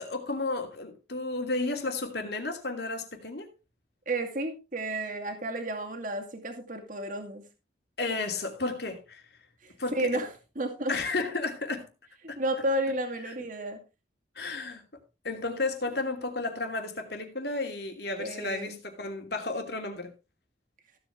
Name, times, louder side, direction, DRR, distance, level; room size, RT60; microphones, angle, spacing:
voice 1, 0.0-3.5 8.0-9.2 9.8-10.2 10.9-11.9 12.3-12.4 13.3-13.4 14.4-14.8 15.2-20.1, left 3 dB, 60° left, 2.8 m, -32 dB
voice 2, 4.1-7.4 9.6-10.9 12.4-13.8 18.2-18.8, right 1 dB, 45° right, 2.3 m, -32 dB
15.5 x 8.0 x 3.5 m
head